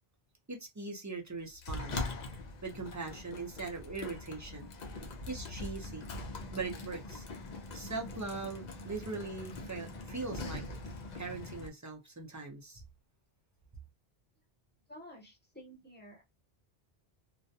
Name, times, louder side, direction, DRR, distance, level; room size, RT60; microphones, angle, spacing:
voice 1, 0.5-2.0 2.6-4.7 5.3-6.0 6.5-7.2 7.7-10.6 11.1-12.8, right 3 dB, 25° right, 0.5 m, -41 dB
Sliding door, 1.6-11.7, left 2 dB, 50° left, 0.6 m, -42 dB
voice 2, 14.9-16.2, equal, 10° left, 0.9 m, -51 dB
2.4 x 2.1 x 2.6 m
omnidirectional pair, 1.0 m